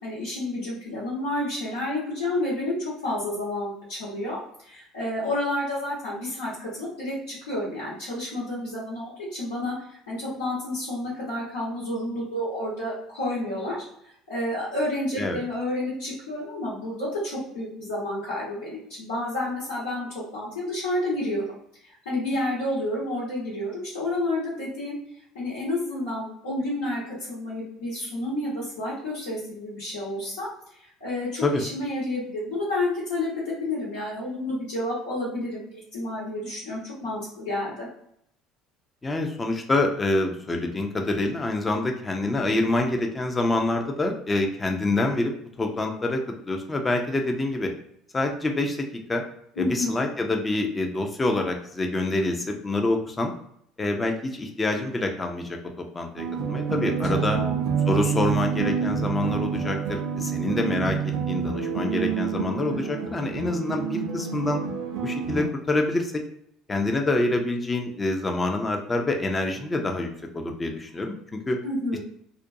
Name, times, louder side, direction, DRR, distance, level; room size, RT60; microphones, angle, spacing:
voice 1, 0.0-20.1 20.3-21.4 22.0-25.0 25.3-27.0 27.3-30.5 30.7-37.9 49.6-50.0 57.1-57.6 71.6-72.0, left 1 dB, 85° left, -11 dB, 1.2 m, -30 dB
voice 2, 39.0-45.3 45.6-47.7 48.1-49.2 49.6-53.3 53.8-55.6 55.9-57.4 57.9-64.6 65.0-66.2 66.7-70.1 70.3-71.6 71.9-72.0, left 2 dB, 25° left, 3 dB, 0.5 m, -26 dB
sound 1, 56.2-65.5, right 6 dB, 65° right, 0.5 m, -28 dB
2.4 x 2.2 x 2.6 m, 0.71 s
hypercardioid pair, 65°, 0 cm